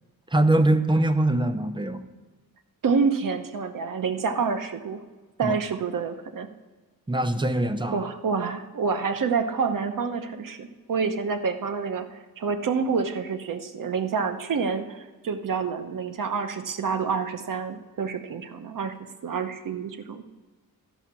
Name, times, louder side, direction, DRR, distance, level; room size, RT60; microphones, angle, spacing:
voice 1, 0.3-2.0 5.4-5.6 7.1-8.0, right 1 dB, 15° right, 9 dB, 0.7 m, -22 dB
voice 2, 2.8-5.0 5.4-6.5 7.9-19.0 19.2-20.2, right 5 dB, 60° right, 8 dB, 1.0 m, -28 dB
13.0 x 5.7 x 6.0 m, 1.3 s
wide cardioid pair, 105°, 36 cm